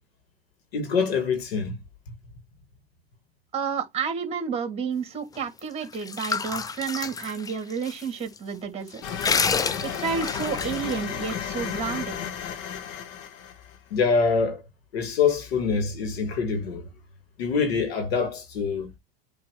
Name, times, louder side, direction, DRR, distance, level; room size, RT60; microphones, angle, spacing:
voice 1, 0.7-1.8 13.9-14.6 14.9-16.9 17.4-18.9, left 5 dB, 85° left, 2.3 m, -25 dB
voice 2, 3.5-9.2 9.8-12.2, right 6 dB, 20° right, 2.4 m, -30 dB
sound 1, 5.6-8.0 8.4-8.5 8.9-11.4, left 5 dB, 15° left, 0.4 m, -29 dB
sound 2, 9.0-13.8, left 8 dB, 55° left, 1.5 m, -33 dB
8.6 x 3.5 x 4.7 m
supercardioid pair, 110°, 30 cm